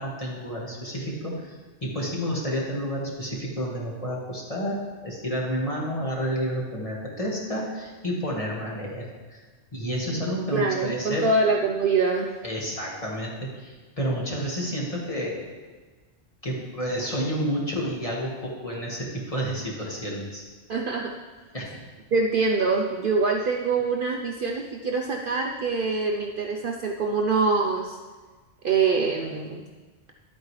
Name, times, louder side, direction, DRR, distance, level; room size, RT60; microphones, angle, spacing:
voice 1, 0.0-9.4 9.7-11.3 12.4-15.4 16.4-20.4 21.5-21.8, equal, 30° left, -3 dB, 1.7 m, -30 dB
voice 2, 10.5-12.3 20.7-21.1 22.1-28.0 28.6-29.6, right 4 dB, 55° right, 1 dB, 0.7 m, -24 dB
11.0 x 8.4 x 3.2 m, 1.3 s
omnidirectional pair, 1.3 m